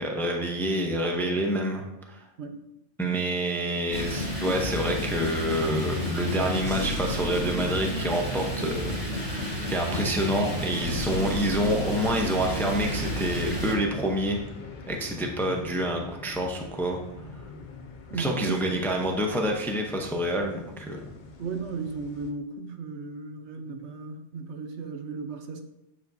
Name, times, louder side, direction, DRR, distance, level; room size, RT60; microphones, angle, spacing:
voice 1, 0.0-2.2 3.0-9.4 9.7-14.4 14.9-17.0 18.2-21.0, equal, ahead, 1 dB, 0.6 m, -27 dB
sound 1, 3.9-13.7, equal, 30° right, 1.9 m, -31 dB
sound 2, 12.4-22.3, left 3 dB, 50° left, 0.7 m, -44 dB
voice 2, 18.1-18.9 21.4-25.6, right 4 dB, 70° right, 6 dB, 1.0 m, -35 dB
7.3 x 7.0 x 2.7 m, 0.91 s
omnidirectional pair, 1.2 m